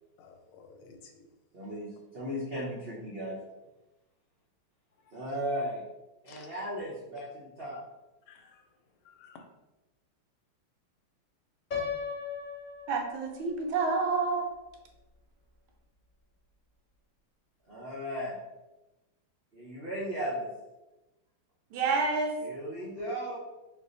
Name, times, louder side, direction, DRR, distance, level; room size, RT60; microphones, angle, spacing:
voice 1, 0.2-1.3 5.1-5.3 6.3-6.5 8.3-8.6 9.0-9.4, left 5 dB, 85° left, 5 dB, 1.5 m, -54 dB
voice 2, 1.5-3.4 5.1-5.8 6.2-7.8 17.7-18.4 19.5-20.5 22.4-23.4, equal, 60° right, -7 dB, 0.6 m, -36 dB
Piano, 11.7-13.7, left 6 dB, 55° left, 0.5 m, -37 dB
voice 3, 12.9-14.5 21.7-22.3, right 4 dB, 80° right, 3 dB, 1.5 m, -28 dB
4.3 x 2.7 x 3.9 m, 1.0 s
omnidirectional pair, 2.3 m